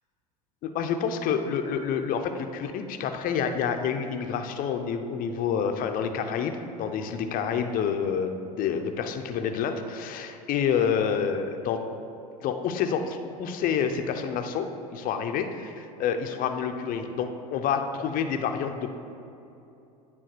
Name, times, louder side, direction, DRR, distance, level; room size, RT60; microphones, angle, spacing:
voice 1, 0.6-11.8 12.4-18.9, left 7 dB, 45° left, 6 dB, 0.7 m, -28 dB
9.2 x 3.5 x 6.6 m, 2.8 s
hypercardioid pair, 80°, 20 cm